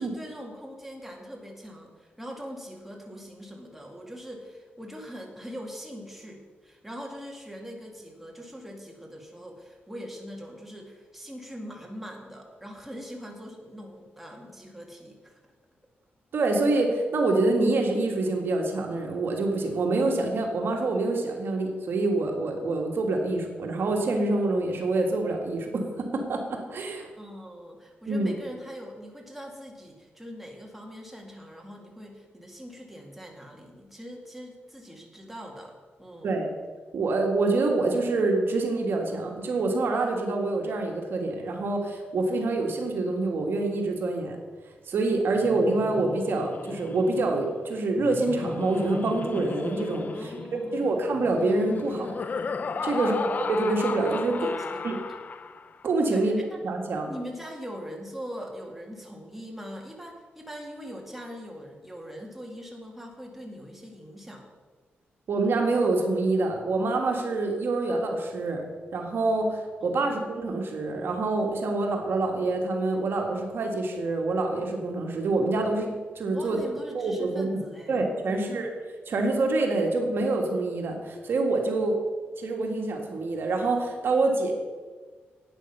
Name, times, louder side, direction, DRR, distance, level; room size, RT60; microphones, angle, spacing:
voice 1, 0.0-15.4 27.2-35.7 36.0-36.3 50.1-51.0 52.9-53.4 54.2-54.9 56.1-56.7 57.1-64.4 70.0-70.3 76.3-78.7, equal, 5° right, -1 dB, 2.1 m, -42 dB
voice 2, 16.3-27.1 28.1-28.3 36.2-36.5 36.9-44.4 44.9-50.3 50.7-52.2 52.8-53.2 53.5-54.4 54.8-55.0 55.8-56.4 56.6-57.1 65.3-68.6 68.9-76.6 76.9-77.6 77.9-78.7 79.1-82.0 82.4-84.5, right 2 dB, 65° right, 2 dB, 1.8 m, -26 dB
Laughter, 45.4-55.8, left 4 dB, 45° left, 0.5 m, -35 dB
12.0 x 8.9 x 5.5 m, 1.4 s
wide cardioid pair, 120°, 4 cm